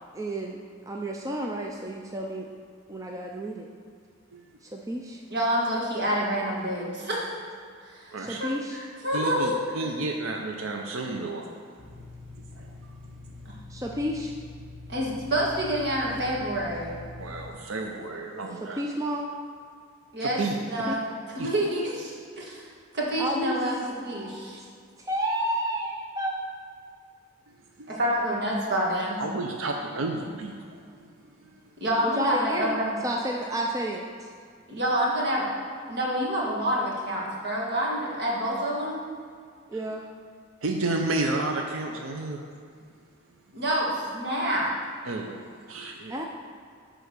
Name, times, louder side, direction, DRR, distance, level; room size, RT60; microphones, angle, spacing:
voice 1, 0.1-0.6 0.9-2.5 2.9-3.7 4.6-5.2 8.2-8.8 13.7-14.3 18.6-19.3 20.9-21.0 23.2-23.5 24.0-24.5 25.1-26.4 32.0-32.8 33.0-34.3 39.7-40.1 46.1-46.3, right 1 dB, 15° right, 0 dB, 0.4 m, -31 dB
voice 2, 5.3-7.3 7.9-9.6 13.5-13.6 14.9-16.9 20.1-20.4 20.7-21.1 21.4-22.7 22.9-23.8 24.0-24.6 27.9-29.2 31.8-33.0 34.7-35.5 35.9-39.0 43.5-44.7, equal, 55° right, -4 dB, 1.9 m, -27 dB
voice 3, 9.1-12.1 12.5-13.1 17.2-18.8 20.2-20.9 21.4-21.5 27.5-27.9 29.2-31.1 31.4-31.6 34.7-34.8 39.7-39.8 40.6-42.4 45.0-46.2, right 2 dB, 80° right, 2 dB, 0.7 m, -32 dB
sound 1, 11.8-17.5, left 2 dB, ahead, 1.3 m, -44 dB
9.6 x 3.9 x 6.6 m, 2.2 s
head